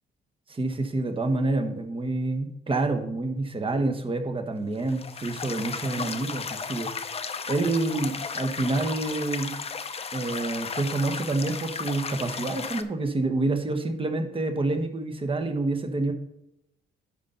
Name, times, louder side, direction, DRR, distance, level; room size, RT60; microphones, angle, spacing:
voice 1, 0.5-6.9 7.5-9.6 10.1-16.1, right 2 dB, 25° right, 5 dB, 1.2 m, -28 dB
sound 1, 4.7-12.8, left 5 dB, 30° left, 0.7 m, -35 dB
10.0 x 5.4 x 3.9 m, 0.86 s
cardioid pair, 90°, 20 cm